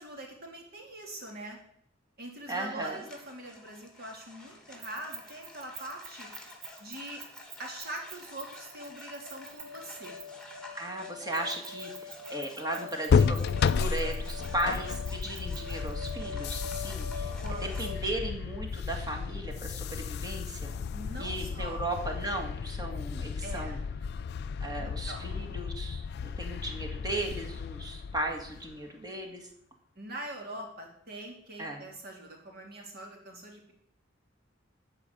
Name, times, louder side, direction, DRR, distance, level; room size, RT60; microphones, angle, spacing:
voice 1, 0.0-1.6 2.2-6.3 6.8-7.2 7.6-10.2 17.4-17.7 20.9-21.8 23.4-23.8 24.8-25.2 29.9-33.7, right 1 dB, 50° right, 0 dB, 3.0 m, -43 dB
voice 2, 2.5-3.0 10.8-17.3 17.6-20.7 21.2-23.8 24.6-29.5 31.6-31.8, right 1 dB, 20° right, 1 dB, 1.9 m, -36 dB
sound 1, 2.8-17.9, left 3 dB, 5° left, 1.8 m, -45 dB
Keys jangling, 4.8-10.5 11.3-16.1, right 7 dB, 75° right, 1.9 m, -48 dB
sound 2, 13.1-28.8, left 6 dB, 55° left, 0.3 m, -32 dB
11.5 x 5.1 x 8.2 m, 0.71 s
head